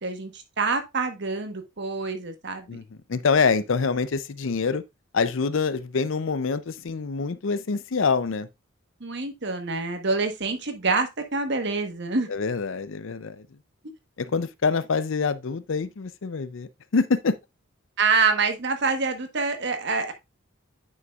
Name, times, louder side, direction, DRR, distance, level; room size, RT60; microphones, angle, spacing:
voice 1, 0.0-2.8 9.0-12.3 18.0-20.1, right 4 dB, 55° right, 1.2 m, -26 dB
voice 2, 3.1-4.8 5.1-8.5 12.3-13.4 14.2-17.3, left 5 dB, 65° left, 0.5 m, -25 dB
9.4 x 5.6 x 2.4 m
head